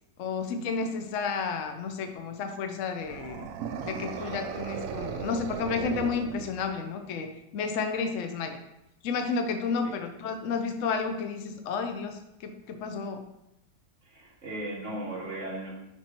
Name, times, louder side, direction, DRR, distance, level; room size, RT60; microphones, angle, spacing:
voice 1, 0.2-3.5 3.8-8.6 9.0-13.2, left 5 dB, 60° left, 5 dB, 0.9 m, -31 dB
sound 1, 3.0-6.9, right 7 dB, 70° right, 0.8 m, -37 dB
voice 2, 14.1-15.7, right 1 dB, 45° right, -5 dB, 2.3 m, -36 dB
10.5 x 4.5 x 3.0 m, 0.86 s
omnidirectional pair, 1.8 m